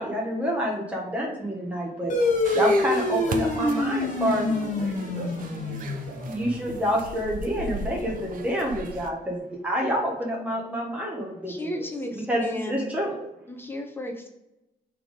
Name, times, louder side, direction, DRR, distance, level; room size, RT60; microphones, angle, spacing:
voice 1, 0.0-2.1 2.5-4.5 6.3-11.9 12.1-13.1, equal, 10° right, -2 dB, 1.1 m, -28 dB
sound 1, 2.1-7.0, left 2 dB, 50° left, 1.1 m, -26 dB
sound 2, 2.2-9.1, right 3 dB, 55° right, 0.7 m, -38 dB
voice 2, 4.1-6.8, right 3 dB, 85° right, 1 dB, 1.2 m, -41 dB
voice 3, 11.5-12.9 13.5-14.3, left 1 dB, 15° left, 3 dB, 0.7 m, -34 dB
6.0 x 3.5 x 5.1 m, 0.92 s
cardioid pair, 160°, 17 cm